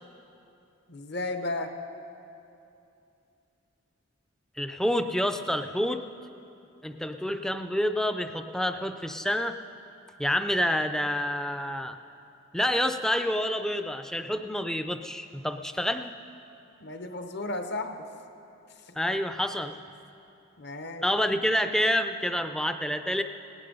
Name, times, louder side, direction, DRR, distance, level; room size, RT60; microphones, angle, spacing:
voice 1, 0.9-1.8 16.8-18.0 18.9-19.0 20.6-21.0, left 2 dB, 55° left, 7 dB, 0.9 m, -34 dB
voice 2, 4.6-6.0 6.8-9.6 10.2-12.0 12.5-16.1 19.0-19.8 21.0-23.2, equal, 5° left, 8 dB, 0.4 m, -28 dB
18.0 x 11.0 x 5.3 m, 2.7 s
head